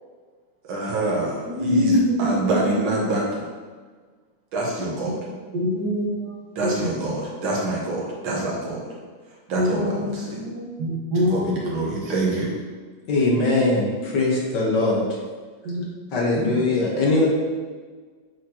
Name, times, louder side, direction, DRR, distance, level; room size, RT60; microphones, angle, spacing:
voice 1, 0.7-3.2 4.5-5.2 6.6-8.8 9.5-10.3 11.2-12.5, right 2 dB, 85° right, -4 dB, 2.2 m, -25 dB
voice 2, 1.5-2.7 5.1-5.2 5.5-6.9 9.5-10.1 10.4-11.9 15.6-15.8 16.4-16.5, left 1 dB, 55° right, -4 dB, 1.8 m, -25 dB
voice 3, 13.1-15.0 16.1-17.3, left 2 dB, 60° left, -4 dB, 2.0 m, -21 dB
8.1 x 4.3 x 3.0 m, 1.5 s
omnidirectional pair, 2.2 m